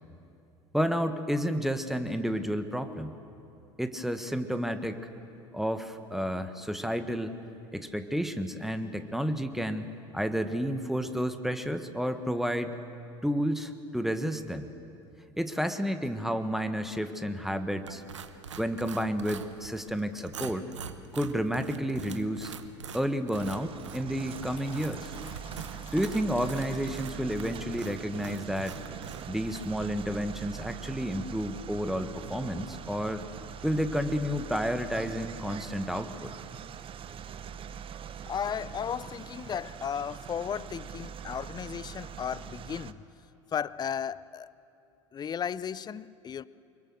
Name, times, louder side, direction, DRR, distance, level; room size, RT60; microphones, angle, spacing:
voice 1, 0.7-3.1 3.8-5.0 5.5-7.4 7.7-12.7 13.2-14.7 15.4-18.0 18.6-20.6 21.1-22.5 22.9-25.1 25.9-28.8 29.3-33.2 33.6-36.3, equal, ahead, 1.4 m, -31 dB
sound 1, 17.9-29.7, right 7 dB, 80° right, 1.0 m, -45 dB
sound 2, 23.3-42.9, right 8 dB, 35° right, 0.9 m, -43 dB
Water tap faucet / Trickle dribble, 24.4-29.4, left 4 dB, 85° left, 2.4 m, -53 dB
voice 2, 38.3-43.0 43.5-44.5 45.1-46.4, left 8 dB, 25° left, 0.5 m, -35 dB
24.5 x 22.5 x 6.4 m
figure-of-eight pair, 70°, 15 cm